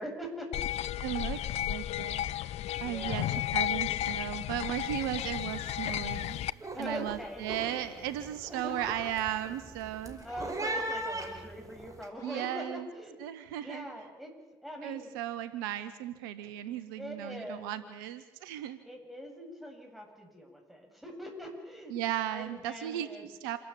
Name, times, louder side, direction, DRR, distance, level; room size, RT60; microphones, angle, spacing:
voice 1, 0.0-0.9 2.8-3.3 6.7-7.4 8.5-8.7 10.2-13.2 13.6-14.3 14.6-15.1 17.0-17.7 18.8-21.9 22.3-23.2, equal, ahead, 2 dB, 8.0 m, -42 dB
sound 1, 0.5-6.5, left 13 dB, 65° left, 0.6 m, -33 dB
voice 2, 1.0-2.3 2.8-3.2 3.5-6.4 6.8-10.2 12.2-12.9 13.2-13.9 14.8-18.8 21.9-23.6, right 12 dB, 85° right, 13 dB, 1.3 m, -36 dB
sound 2, 4.7-5.0 5.3-5.7 6.1-12.1, right 1 dB, 30° right, 5.0 m, -40 dB
Motor vehicle (road) / Siren, 5.6-6.0 7.4-7.9 8.7-9.2 10.3-10.9 12.2-12.7, left 2 dB, 30° left, 6.1 m, -50 dB
27.5 x 12.5 x 8.6 m, 1.1 s
hypercardioid pair, 45°, 12 cm